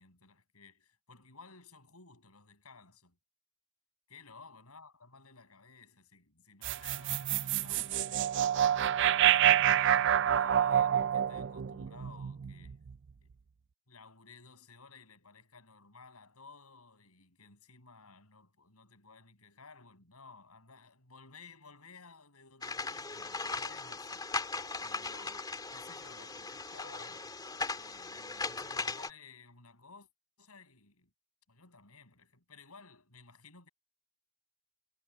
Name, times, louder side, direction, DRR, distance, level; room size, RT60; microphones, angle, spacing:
voice 1, 0.0-3.2 4.1-8.3 9.0-12.8 13.2-13.3 13.9-24.3 24.8-25.4 25.7-27.4 27.7-30.1 30.4-31.1 31.5-33.7, left 4 dB, 85° left, 7.2 m, -56 dB
sound 1, 6.6-12.9, right 10 dB, 55° right, 0.4 m, -27 dB
sound 2, 22.6-29.1, left 3 dB, 20° left, 2.7 m, -38 dB
head